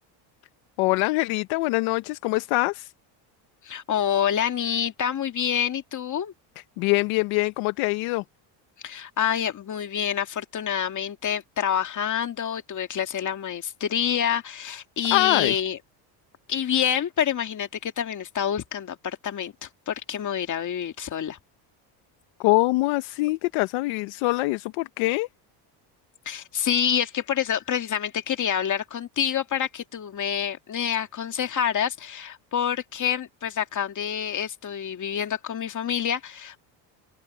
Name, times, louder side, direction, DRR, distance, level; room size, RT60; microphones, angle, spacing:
voice 1, 0.8-2.9 6.8-8.2 15.1-15.5 22.4-25.3, left 22 dB, 90° left, 1.1 m, -24 dB
voice 2, 3.6-6.3 8.8-15.8 16.5-21.4 26.3-36.6, left 9 dB, 40° left, 2.3 m, -27 dB
open air
cardioid pair, 125°, 47 cm